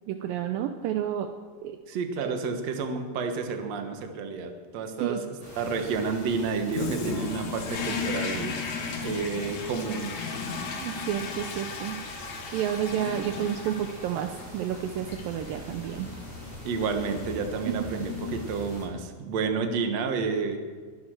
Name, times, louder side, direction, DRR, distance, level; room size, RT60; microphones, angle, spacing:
voice 1, 0.1-1.3 1.6-1.8 2.2-2.3 5.0-5.2 10.8-12.0 12.5-16.1 17.7-17.8, right 10 dB, 85° right, 7 dB, 2.0 m, -30 dB
voice 2, 1.9-8.5 9.0-10.1 16.6-20.6, right 5 dB, 55° right, 6 dB, 1.9 m, -30 dB
sound 1, 5.4-18.8, left 1 dB, 15° right, 5.9 m, -45 dB
Toilet flush, 6.7-19.0, left 5 dB, 55° left, 2.3 m, -36 dB
21.0 x 10.0 x 6.5 m, 1.5 s
omnidirectional pair, 4.9 m